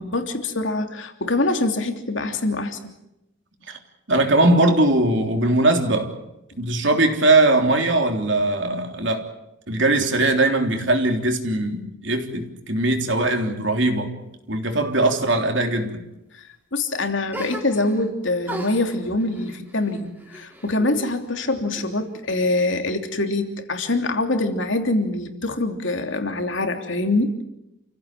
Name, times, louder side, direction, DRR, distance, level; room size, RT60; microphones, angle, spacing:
voice 1, 0.0-2.9 10.0-10.1 16.3-27.3, left 2 dB, 65° left, 5 dB, 3.1 m, -24 dB
voice 2, 4.1-6.1 6.6-9.3 9.7-14.1 14.5-16.0, right 2 dB, 60° right, 4 dB, 3.5 m, -20 dB
sound 1, 17.3-18.1 18.4-21.2 21.5-22.3, right 1 dB, 10° right, 3.5 m, -37 dB
29.5 x 16.0 x 9.2 m, 0.90 s
head